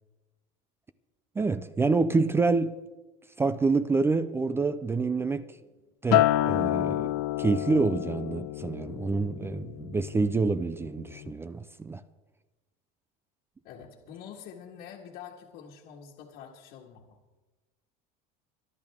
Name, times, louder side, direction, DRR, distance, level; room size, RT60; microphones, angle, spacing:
voice 1, 1.4-2.8 3.4-5.5 6.0-12.0, right 3 dB, 10° right, 0.4 m, -27 dB
Acoustic guitar, 6.1-10.5 10.9-11.3, left 16 dB, 75° left, 0.6 m, -28 dB
voice 2, 13.6-17.2, left 8 dB, 60° left, 1.8 m, -46 dB
25.5 x 10.5 x 3.6 m
supercardioid pair, 140°, 20 cm